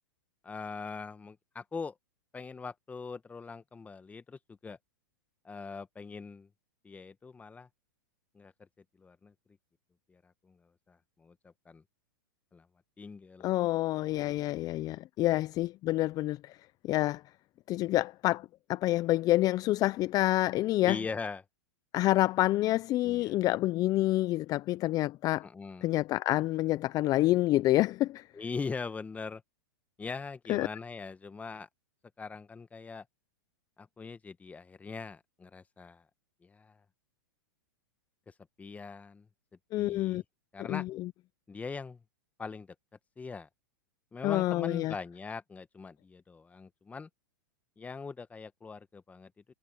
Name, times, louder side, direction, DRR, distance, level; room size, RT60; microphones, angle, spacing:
voice 1, 0.4-1.9 2.3-4.8 5.4-6.5 6.8-7.7 8.3-8.5 9.0-9.3 10.1-10.6 10.9-11.3 11.6-11.8 12.5-12.7 13.0-13.5 15.3-15.4 20.8-21.4 23.0-23.4 25.4-25.9 28.3-29.4 30.0-31.7 32.2-33.0 33.8-36.0 36.4-36.8 38.3-39.3 39.8-40.2 40.5-40.9 41.5-42.0 42.4-42.7 43.2-43.5 44.1-47.1 47.8-49.3, left 4 dB, 15° left, 1.5 m, -41 dB
voice 2, 13.4-16.6 16.8-17.2 17.7-21.0 21.9-25.5 25.8-28.3 30.5-30.7 39.7-40.2 40.7-41.1 44.2-44.9, left 16 dB, 35° left, 0.6 m, -28 dB
hypercardioid pair, 115°, 11 cm